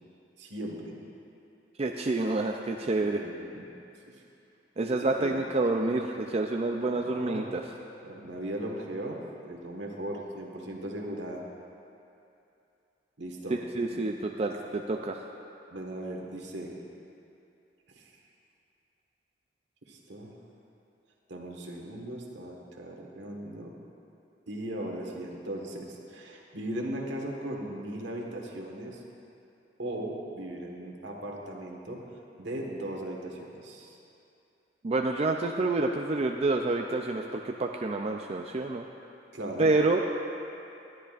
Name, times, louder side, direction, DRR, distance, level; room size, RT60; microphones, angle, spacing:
voice 1, 0.4-0.9 3.0-3.7 4.0-4.2 5.2-5.3 6.9-7.5 8.0-11.4 13.2-13.6 13.9-14.0 15.7-16.7 17.9-18.1 19.8-20.3 21.3-23.7 24.5-29.0 29.8-32.0 32.4-34.0 39.3-39.7, right 1 dB, 75° right, 0 dB, 1.6 m, -38 dB
voice 2, 1.8-3.2 4.8-7.6 13.5-15.3 34.8-38.8 39.6-40.0, right 2 dB, 35° right, 2 dB, 0.4 m, -28 dB
20.5 x 10.5 x 2.5 m, 2.7 s
head